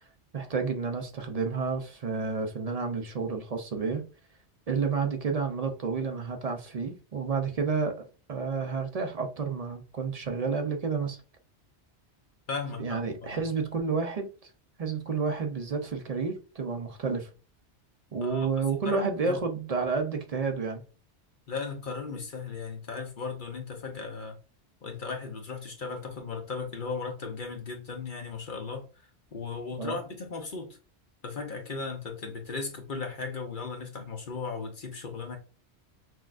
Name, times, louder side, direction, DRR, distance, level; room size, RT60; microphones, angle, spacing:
voice 1, 0.3-4.1 4.7-11.2 12.8-14.5 14.8-17.3 18.1-20.8 29.8-30.0, right 5 dB, 50° right, 0.5 m, -30 dB
voice 2, 12.5-13.4 18.2-18.5 18.8-19.4 21.5-24.4 24.8-28.9 29.3-30.8 31.2-35.4, left 4 dB, 50° left, 0.8 m, -36 dB
6.0 x 2.3 x 2.4 m
omnidirectional pair, 1.2 m